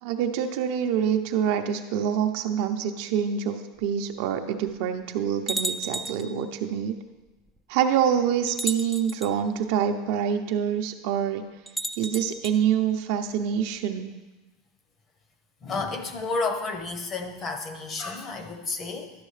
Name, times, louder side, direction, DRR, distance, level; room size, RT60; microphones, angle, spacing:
voice 1, 0.0-6.9 7.7-11.4 12.0-14.1, right 8 dB, 60° right, 6 dB, 0.7 m, -26 dB
sound 1, 3.8-3.9 4.7-4.8 5.5-6.3 7.5-7.6 8.5-9.3 11.7-12.6, right 1 dB, ahead, 0.3 m, -33 dB
voice 2, 15.6-19.1, left 3 dB, 25° left, 6 dB, 0.8 m, -31 dB
11.0 x 6.3 x 3.3 m, 1.1 s
supercardioid pair, 145°, 0 cm